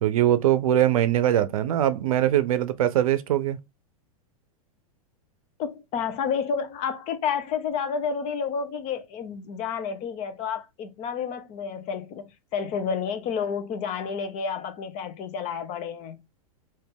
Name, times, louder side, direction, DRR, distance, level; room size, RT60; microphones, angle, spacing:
voice 1, 0.0-3.6, right 11 dB, 70° right, 0.6 m, -22 dB
voice 2, 5.6-16.2, left 6 dB, 40° left, 0.8 m, -30 dB
3.4 x 2.7 x 3.9 m
hypercardioid pair, 110°, 19 cm